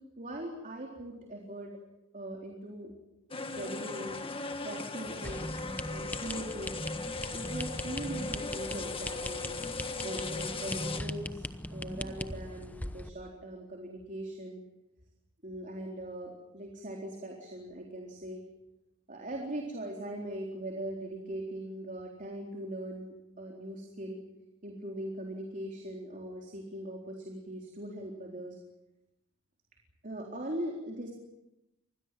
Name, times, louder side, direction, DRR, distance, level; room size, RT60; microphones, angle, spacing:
voice 1, 0.2-1.7 2.1-2.9 3.5-4.2 4.6-5.5 5.9-6.8 7.3-11.4 11.7-14.6 15.4-18.4 19.1-24.2 24.6-28.6 30.0-31.1, right 1 dB, 40° right, 0 dB, 4.0 m, -40 dB
sound 1, 3.3-11.0, left 3 dB, 25° left, 1.9 m, -38 dB
sound 2, 5.2-13.1, left 1 dB, 10° left, 0.9 m, -40 dB
26.5 x 20.5 x 7.7 m, 0.93 s
head